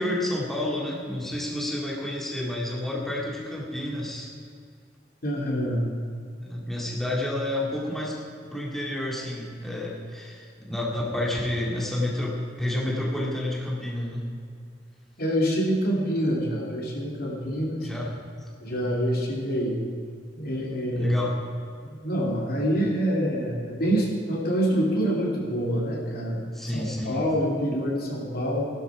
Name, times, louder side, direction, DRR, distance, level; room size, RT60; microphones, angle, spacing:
voice 1, 0.0-4.3 6.4-8.2 8.5-14.2 17.8-18.2 20.9-21.4 26.5-27.2, left 1 dB, ahead, -4 dB, 2.3 m, -30 dB
voice 2, 5.2-5.9 15.2-17.9 18.6-19.8 20.3-21.1 21.8-28.7, equal, 55° left, -2 dB, 2.8 m, -26 dB
16.5 x 12.0 x 5.0 m, 2.2 s
head